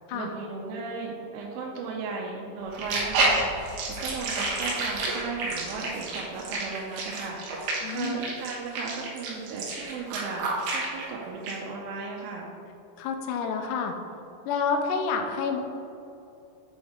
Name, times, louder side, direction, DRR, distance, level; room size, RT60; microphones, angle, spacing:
voice 1, 0.1-12.5, right 4 dB, 90° right, -2 dB, 3.1 m, -36 dB
sound 1, 2.7-11.0 11.5-11.6, right 2 dB, 70° right, 2.7 m, -29 dB
voice 2, 7.8-8.2 13.0-13.9 14.5-15.6, left 5 dB, 85° left, 4 dB, 2.5 m, -28 dB
8.4 x 4.4 x 3.6 m, 2.7 s
omnidirectional pair, 5.5 m